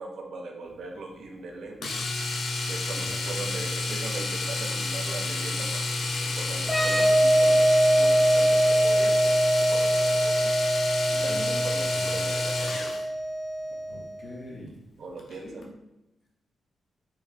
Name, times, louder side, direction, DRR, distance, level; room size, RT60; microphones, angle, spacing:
voice 1, 0.0-2.0 2.7-10.6 11.1-12.9 15.0-15.7, right 3 dB, 70° right, 2 dB, 0.6 m, -40 dB
Domestic sounds home sounds, 1.8-13.1 15.2-15.3 15.6-15.7, left 3 dB, 75° left, 0.6 m, -30 dB
sound 1, 6.6-14.1, right 1 dB, 5° left, 0.7 m, -23 dB
voice 2, 11.3-11.7 12.0-12.1 13.9-14.8 15.4-15.7, left 1 dB, 55° left, -3 dB, 1.2 m, -42 dB
4.5 x 2.2 x 3.3 m, 0.94 s
wide cardioid pair, 130°, 0 cm